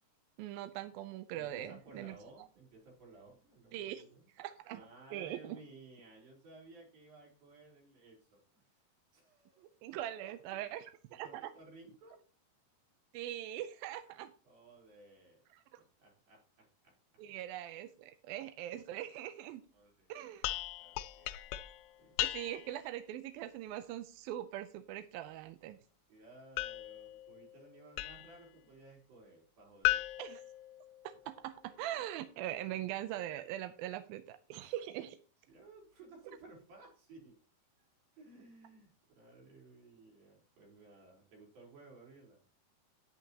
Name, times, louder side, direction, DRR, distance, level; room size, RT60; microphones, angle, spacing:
voice 1, 0.4-2.2 3.7-4.0 4.4-4.8 5.1-5.6 9.6-10.8 11.1-11.5 13.1-14.3 15.5-15.8 17.2-19.6 20.1-20.5 22.2-25.8 30.2-30.4 31.0-35.2, right 12 dB, 80° right, 9 dB, 2.3 m, -42 dB
voice 2, 1.3-4.2 4.7-8.8 9.1-10.6 11.1-12.2 14.4-15.4 15.8-16.9 19.7-21.5 22.0-22.2 26.1-30.0 31.6-31.9 34.6-34.8 35.5-37.4 37.8-37.9 38.2-42.4, right 2 dB, 65° right, -1 dB, 5.5 m, -57 dB
sound 1, 20.4-22.8 26.6-28.4 29.8-31.3, left 16 dB, 85° left, 2.7 m, -37 dB
11.0 x 10.0 x 2.9 m, 0.40 s
omnidirectional pair, 4.7 m